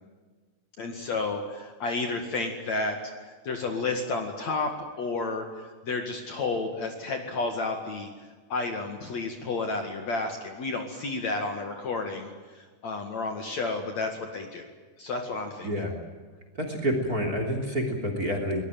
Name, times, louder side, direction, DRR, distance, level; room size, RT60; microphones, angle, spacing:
voice 1, 0.8-3.0 3.4-5.5 5.8-8.1 8.5-14.7 15.0-15.8, left 3 dB, 50° left, 4 dB, 2.8 m, -31 dB
voice 2, 15.6-15.9 16.6-18.6, equal, 25° right, 4 dB, 3.3 m, -28 dB
23.5 x 19.5 x 9.3 m, 1.4 s
omnidirectional pair, 4.7 m